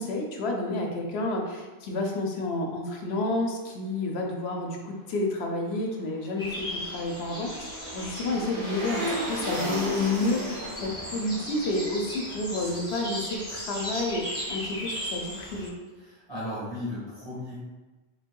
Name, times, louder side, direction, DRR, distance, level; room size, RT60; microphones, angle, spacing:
voice 1, 0.0-15.7, left 2 dB, 70° left, 1 dB, 0.8 m, -30 dB
sound 1, 6.2-13.4 13.7-13.8, right 1 dB, 50° right, 1.4 m, -36 dB
sound 2, 6.4-15.7, equal, 5° left, 0.9 m, -37 dB
voice 2, 16.0-17.6, left 1 dB, 25° left, -10 dB, 1.2 m, -35 dB
3.6 x 3.5 x 2.2 m, 1.2 s
omnidirectional pair, 1.1 m